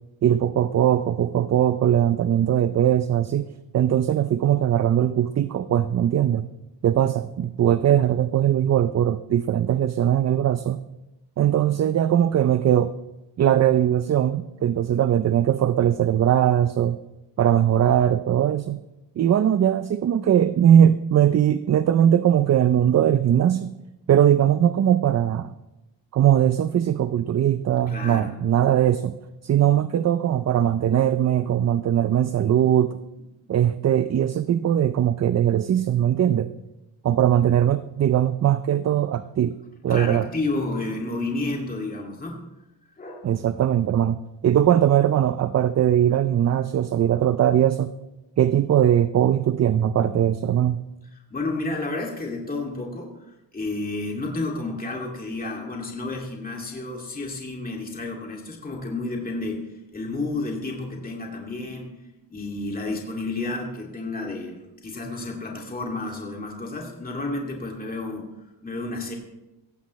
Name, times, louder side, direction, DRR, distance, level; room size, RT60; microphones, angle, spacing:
voice 1, 0.2-3.5 3.7-6.5 6.8-10.8 11.4-12.9 13.4-17.0 17.4-18.8 19.2-23.7 24.1-25.5 26.1-29.2 29.4-33.0 33.5-36.5 37.0-39.6 39.8-40.2 43.2-44.2 44.4-47.9 48.4-50.8, right 10 dB, 40° right, 12 dB, 0.4 m, -20 dB
voice 2, 27.9-28.3 31.3-31.5 39.9-42.4 43.0-43.3 51.3-62.0 62.3-68.3 68.6-69.1, left 2 dB, 20° left, -1 dB, 2.2 m, -31 dB
16.0 x 16.0 x 3.1 m, 0.97 s
cardioid pair, 125°, 45 cm